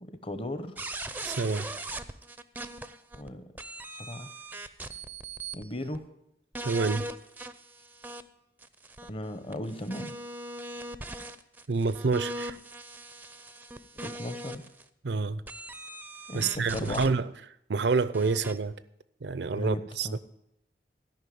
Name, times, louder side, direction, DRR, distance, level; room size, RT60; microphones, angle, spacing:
voice 1, 0.0-0.7 3.2-3.4 4.1-4.3 5.5-6.0 9.1-10.1 14.0-14.6 16.3-17.1 19.6-20.2, left 1 dB, 30° left, 0.9 m, -36 dB
sound 1, 0.8-3.3 3.6-5.6 5.9-6.0 6.5-8.2 8.6-14.8 15.5-17.1 18.1-18.6, right 2 dB, 10° right, 0.5 m, -40 dB
voice 2, 1.2-1.7 6.6-7.1 11.7-12.6 15.0-15.4 16.3-17.3 17.7-18.7 19.2-20.2, right 4 dB, 70° right, 0.6 m, -28 dB
13.5 x 5.7 x 9.2 m
head